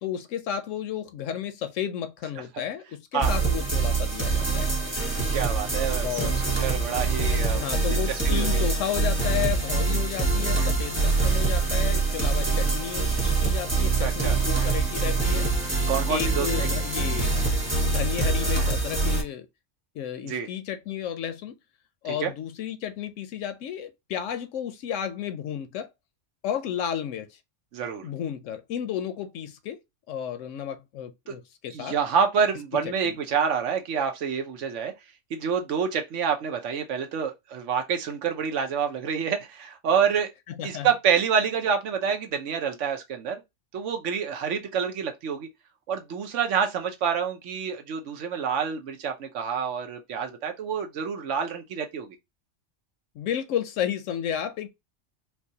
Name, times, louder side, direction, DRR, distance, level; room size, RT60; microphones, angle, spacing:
voice 1, 0.0-4.8 6.0-6.4 7.5-15.5 16.1-17.5 17.8-19.5 19.9-21.6 22.0-25.9 26.4-27.4 28.0-29.8 30.1-32.0 33.0-33.2 40.5-40.9 53.2-54.7, left 9 dB, 80° left, 0.9 m, -32 dB
sound 1, 3.2-19.2, right 3 dB, 10° right, 1.1 m, -24 dB
voice 2, 5.3-7.6 7.9-8.7 14.0-14.4 15.9-16.7 20.2-20.5 22.2-22.3 27.7-28.1 31.3-31.4 31.7-34.9 35.3-40.3 40.6-43.4 43.7-45.5 45.9-52.2, right 7 dB, 75° right, 1.1 m, -27 dB
4.5 x 2.2 x 2.7 m
omnidirectional pair, 1.3 m